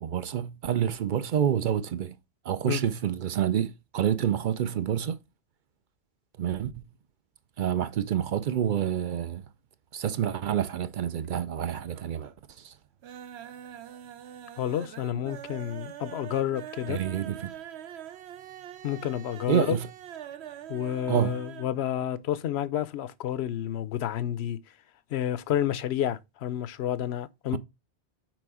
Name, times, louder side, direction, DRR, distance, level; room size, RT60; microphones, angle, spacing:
voice 1, 0.0-2.1 2.5-5.2 6.4-6.7 7.6-9.4 9.9-12.3 12.6-12.7 16.9-17.5 19.5-19.9 21.1-21.4 27.5-27.6, right 9 dB, 55° right, 0.6 m, -28 dB
sound 1, 11.0-11.6 11.9-12.4 12.7-21.8 22.0-22.1 22.5-22.6, right 10 dB, 75° right, 0.9 m, -44 dB
voice 2, 14.6-17.0 18.8-19.8 20.7-24.6 25.1-27.6, left 11 dB, 75° left, 0.9 m, -30 dB
6.2 x 4.7 x 4.7 m
omnidirectional pair, 1.1 m